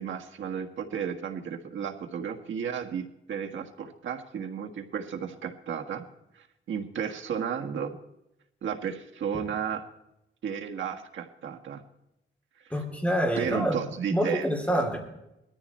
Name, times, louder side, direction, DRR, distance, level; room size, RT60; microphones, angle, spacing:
voice 1, 0.0-6.0 6.3-8.0 8.6-9.8 10.4-11.8 12.6-12.7 13.4-14.8, right 7 dB, 75° right, 4 dB, 1.6 m, -33 dB
voice 2, 12.7-13.8 14.1-15.0, equal, 5° left, 1 dB, 3.2 m, -26 dB
19.5 x 13.5 x 4.3 m, 0.88 s
wide cardioid pair, 155°, 20 cm